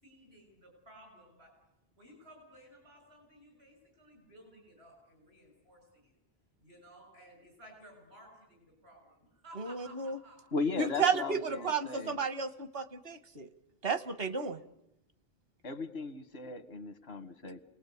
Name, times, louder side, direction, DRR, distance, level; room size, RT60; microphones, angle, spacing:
voice 1, 0.0-1.5 2.0-6.1 6.6-10.4 10.8-11.0 11.5-11.7, right 1 dB, 85° right, 2 dB, 7.2 m, -56 dB
voice 2, 9.6-10.2 10.8-13.5 13.8-14.6, right 5 dB, 70° right, 12 dB, 1.4 m, -32 dB
voice 3, 10.5-12.2 15.6-17.6, left 3 dB, 85° left, 11 dB, 1.7 m, -37 dB
29.0 x 19.5 x 8.4 m, 0.87 s
omnidirectional pair, 1.0 m